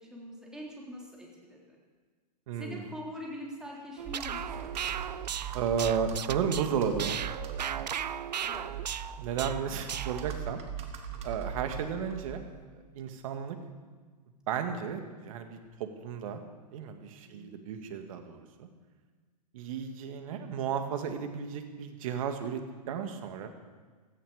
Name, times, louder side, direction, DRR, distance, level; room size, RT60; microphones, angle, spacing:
voice 1, 0.0-1.8 2.5-4.7 8.4-8.7 17.2-17.6, equal, 5° right, -3 dB, 3.8 m, -43 dB
voice 2, 2.5-2.9 5.5-7.2 9.2-10.6 11.2-12.4 12.7-13.6 14.5-16.4 16.7-18.7 19.5-22.6 22.9-23.5, right 7 dB, 55° right, 7 dB, 1.9 m, -33 dB
Computer keyboard, 4.0-12.6, right 8 dB, 30° right, 1.7 m, -40 dB
sound 1, 4.0-10.4, right 8 dB, 80° right, 0.5 m, -37 dB
16.5 x 14.0 x 5.0 m, 1.4 s
hypercardioid pair, 115°, 21 cm